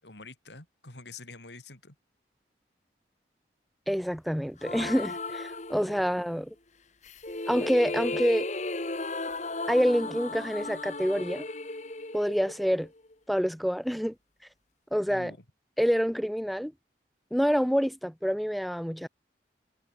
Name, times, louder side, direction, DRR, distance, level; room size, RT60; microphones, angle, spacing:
voice 1, 0.0-2.0 15.1-15.4, left 3 dB, 80° left, 4.4 m, -46 dB
voice 2, 3.9-6.5 7.5-8.5 9.7-11.5 12.1-12.9 13.3-14.1 14.9-15.3 15.8-16.7 17.3-19.1, equal, ahead, 0.8 m, -27 dB
sound 1, 4.6-6.3 7.0-13.1, left 2 dB, 40° left, 1.8 m, -35 dB
head